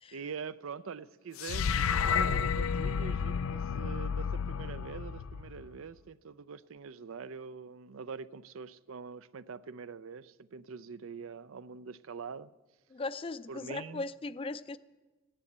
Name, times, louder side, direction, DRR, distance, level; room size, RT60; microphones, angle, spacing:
voice 1, 0.1-12.5 13.5-14.1, right 5 dB, 75° right, 0.5 m, -44 dB
sound 1, 1.4-5.8, left 6 dB, 85° left, 0.4 m, -31 dB
voice 2, 12.9-14.8, left 3 dB, 25° left, 0.4 m, -38 dB
15.5 x 10.0 x 8.0 m
head